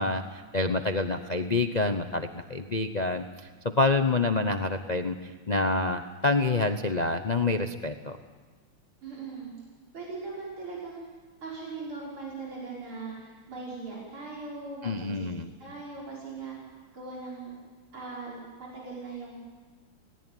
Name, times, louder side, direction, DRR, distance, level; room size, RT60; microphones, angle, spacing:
voice 1, 0.0-3.3 3.6-8.2 14.8-15.5, left 3 dB, 55° left, 7 dB, 0.4 m, -27 dB
voice 2, 9.0-9.5 9.9-11.1 11.4-15.3 15.6-16.6 16.9-17.6 17.9-19.4, right 3 dB, 80° right, -5 dB, 6.5 m, -39 dB
28.0 x 18.5 x 9.2 m, 1.4 s
omnidirectional pair, 2.3 m